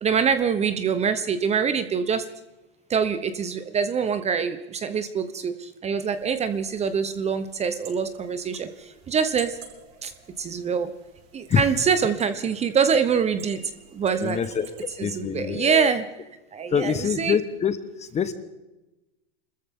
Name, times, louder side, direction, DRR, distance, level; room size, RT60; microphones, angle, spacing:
voice 1, 0.0-2.2 2.9-9.6 10.0-10.1 10.4-10.9 11.3-14.4 15.0-16.0 16.5-17.4, right 6 dB, 20° right, 11 dB, 0.9 m, -25 dB
sound 1, 6.0-15.2, right 6 dB, 50° right, 6.6 m, -48 dB
voice 2, 14.2-14.7 15.0-15.9 16.7-18.3, left 8 dB, 20° left, 12 dB, 1.1 m, -25 dB
26.5 x 14.0 x 3.7 m, 1.0 s
supercardioid pair, 125°, 32 cm